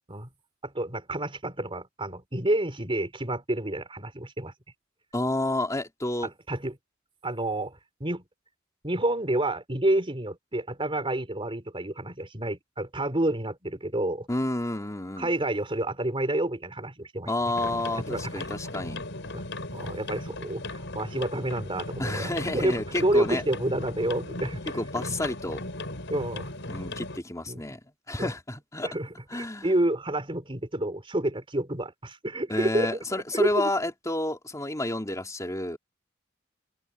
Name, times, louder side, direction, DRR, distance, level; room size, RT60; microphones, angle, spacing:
voice 1, 0.6-4.5 6.2-6.8 7.2-7.7 8.0-8.2 8.8-14.3 15.2-17.3 18.1-18.3 19.3-19.4 19.7-24.6 26.1-26.5 27.5-27.6 28.2-28.3 28.8-33.0 33.3-33.7, right 1 dB, 30° right, 4.1 m, -29 dB
voice 2, 5.1-6.3 14.3-15.3 17.3-19.0 22.0-23.4 24.7-25.6 26.7-27.8 28.1-28.9 29.3-29.7 32.5-35.8, left 1 dB, 15° left, 3.1 m, -30 dB
sound 1, 17.5-27.2, left 2 dB, 65° left, 6.8 m, -37 dB
head